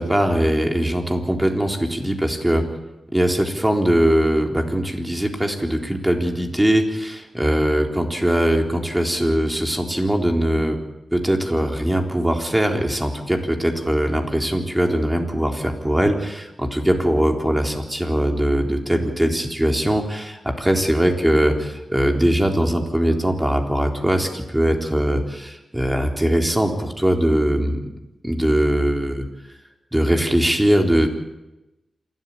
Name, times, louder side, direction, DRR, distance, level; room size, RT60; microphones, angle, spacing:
voice 1, 0.0-2.6 3.1-10.8 11.1-27.8 28.2-29.3 29.9-31.1, right 1 dB, 10° right, 3 dB, 3.8 m, -21 dB
28.0 x 13.0 x 8.6 m, 0.98 s
cardioid pair, 70°, 0 cm